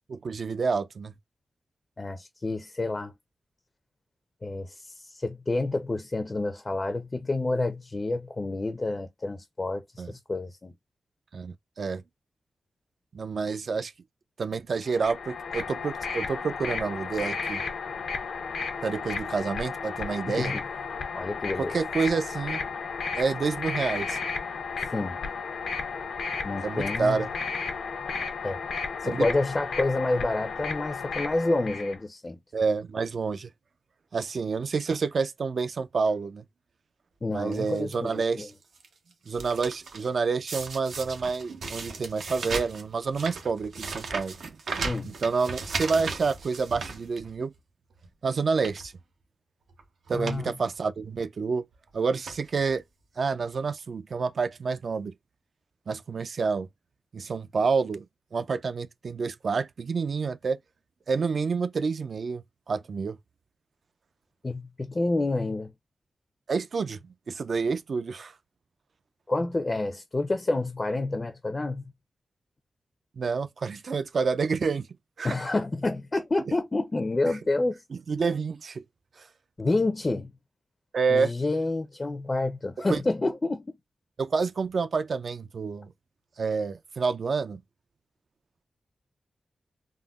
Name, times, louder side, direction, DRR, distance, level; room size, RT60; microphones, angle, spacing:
voice 1, 0.1-1.1 10.0-10.1 11.3-12.0 13.1-13.9 14.4-17.6 18.8-20.5 21.6-22.6 23.2-24.2 26.6-27.3 29.0-29.3 32.5-33.5 34.1-36.4 37.3-38.5 39.3-44.6 45.0-47.5 48.2-48.9 50.1-51.7 51.9-52.8 53.2-55.1 55.9-56.7 57.1-58.1 58.3-60.6 61.1-63.2 66.5-68.3 73.2-74.9 75.2-75.4 77.3-77.4 78.1-78.8 79.2-79.3 80.9-81.3 82.8-83.0 84.2-85.9 86.4-87.6, right 4 dB, 60° right, 0.3 m, -28 dB
voice 2, 2.0-3.1 4.4-10.7 20.3-20.6 21.1-21.7 24.9-25.2 26.4-27.2 28.4-28.6 29.0-32.4 37.2-38.5 44.8-45.1 50.1-50.5 64.4-65.7 69.3-71.9 75.2-77.8 79.6-80.3 81.1-83.7, left 2 dB, 30° left, 0.4 m, -29 dB
sound 1, 14.9-32.0, left 5 dB, 90° left, 0.6 m, -33 dB
sound 2, 37.5-37.9 38.5-38.9 39.1-40.1 40.5-47.6 48.0-48.1 48.5-48.9 49.7-49.8 50.1-50.4 50.7-50.8 51.7-51.9 52.2-52.7 53.5-53.6 53.8-53.9, right 4 dB, 90° right, 0.7 m, -36 dB
3.6 x 2.1 x 2.3 m
wide cardioid pair, 115°, 0 cm